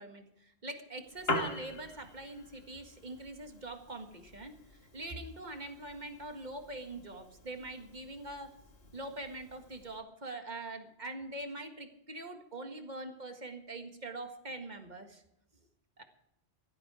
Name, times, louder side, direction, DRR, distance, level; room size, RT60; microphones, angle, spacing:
voice 1, 0.0-4.5 4.9-8.5 8.9-15.2 16.0-16.1, right 2 dB, 40° right, 5 dB, 1.9 m, -43 dB
Piano, 1.0-10.0, left 1 dB, 60° left, 2.1 m, -43 dB
17.0 x 13.0 x 4.9 m, 0.82 s
omnidirectional pair, 1.2 m